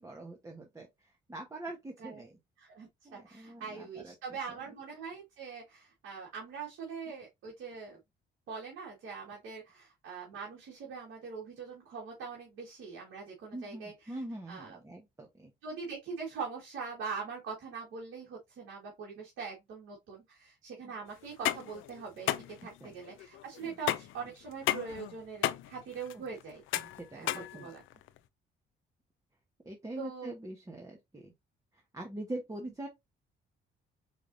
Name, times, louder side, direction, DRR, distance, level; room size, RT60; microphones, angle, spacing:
voice 1, 0.0-2.4 3.0-4.1 13.5-15.5 20.8-20.9 22.8-22.9 23.6-23.8 26.1-26.3 26.8-27.7 29.6-31.3 31.7-32.9, right 1 dB, 15° right, 1.2 m, -43 dB
voice 2, 2.6-8.0 8.5-14.2 14.5-14.8 15.6-22.3 22.6-26.6 27.1-27.8 30.0-30.3, right 5 dB, 80° right, 1.9 m, -42 dB
sound 1, 21.2-28.2, left 14 dB, 80° left, 0.5 m, -35 dB
4.7 x 3.5 x 2.7 m
cardioid pair, 90°, 20 cm